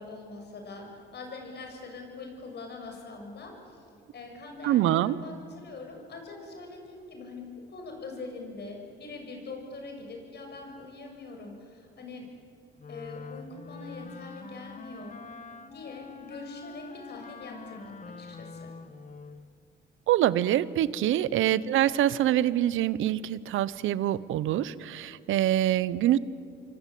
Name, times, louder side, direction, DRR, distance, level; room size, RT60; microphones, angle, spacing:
voice 1, 0.0-3.8 4.1-12.3 12.9-15.2 15.7-18.7 21.6-21.8, left 3 dB, 55° left, 3 dB, 7.2 m, -43 dB
voice 2, 4.6-5.2 20.1-26.2, right 12 dB, 85° right, 17 dB, 0.9 m, -25 dB
Wind instrument woodwind instrument, 12.8-19.5, left 4 dB, 40° left, 1.6 m, -44 dB
27.5 x 23.5 x 8.5 m, 2.4 s
cardioid pair, 90°, 20 cm